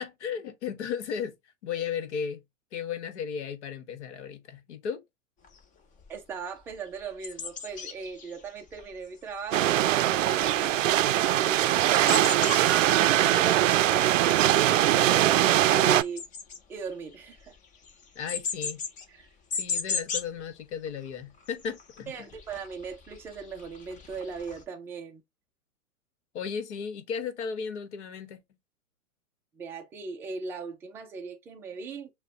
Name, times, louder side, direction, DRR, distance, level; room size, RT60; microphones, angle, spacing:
voice 1, 0.0-1.4 1.6-2.4 2.7-5.0 18.1-18.9 19.6-22.3 26.3-28.4, left 7 dB, 55° left, 1.1 m, -35 dB
sound 1, 5.4-5.6 6.0-6.2 6.6-9.9 10.1-20.4 20.7-20.9 21.1-24.6, left 5 dB, 20° left, 0.7 m, -38 dB
voice 2, 6.1-12.8 13.1-16.2 16.7-17.6 19.1-19.3 22.1-25.2 29.5-32.1, right 4 dB, 5° right, 0.3 m, -39 dB
sound 2, 9.5-16.0, right 13 dB, 70° right, 0.5 m, -22 dB
6.5 x 2.2 x 2.7 m
hypercardioid pair, 110°, 40 cm